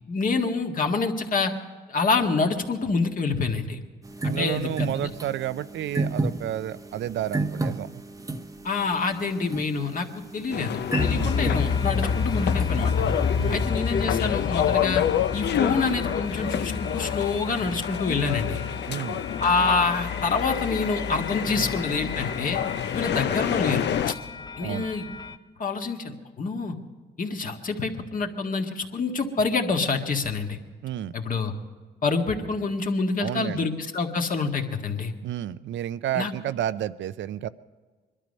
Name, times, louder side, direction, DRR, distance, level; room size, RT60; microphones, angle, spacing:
voice 1, 0.1-1.5 1.9-3.8 4.2-5.1 8.6-13.1 13.5-15.0 15.3-18.6 19.4-22.6 22.9-24.2 24.6-25.1 25.6-26.8 27.2-30.6 31.1-31.5 32.0-35.1 36.2-36.3, left 4 dB, 45° left, 3 dB, 1.8 m, -27 dB
sound 1, 4.0-13.6, right 2 dB, 15° right, 0.8 m, -33 dB
voice 2, 4.3-7.9 11.1-11.5 13.4-13.7 18.9-19.2 24.6-24.9 30.8-31.1 33.2-33.7 35.2-37.5, right 11 dB, 70° right, 15 dB, 0.6 m, -31 dB
sound 2, 10.5-24.1, left 9 dB, 60° left, 0.6 m, -29 dB
sound 3, 11.0-25.3, left 5 dB, 20° left, 0.7 m, -30 dB
22.0 x 12.5 x 5.3 m, 1.4 s
cardioid pair, 90°, 20 cm